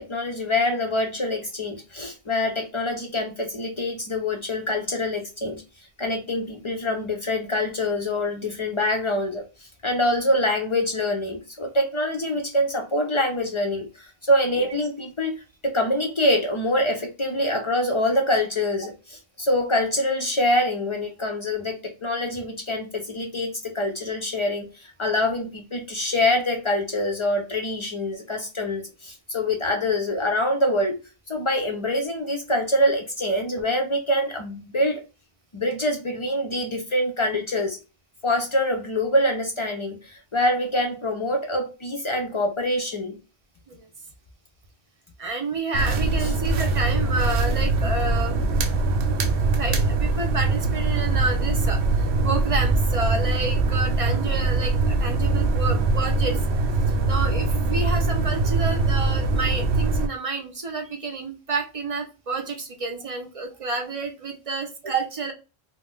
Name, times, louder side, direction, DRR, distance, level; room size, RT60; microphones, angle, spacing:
voice 1, 0.0-5.6 6.0-31.0 31.3-35.0 35.5-37.8 38.2-43.2 46.2-46.3, left 1 dB, 50° left, 0.3 m, -25 dB
voice 2, 45.2-48.4 49.6-56.4 57.1-65.3, right 3 dB, 45° right, 0.5 m, -29 dB
sound 1, 45.7-60.1, right 3 dB, 90° right, 0.9 m, -22 dB
2.4 x 2.1 x 3.6 m
omnidirectional pair, 1.1 m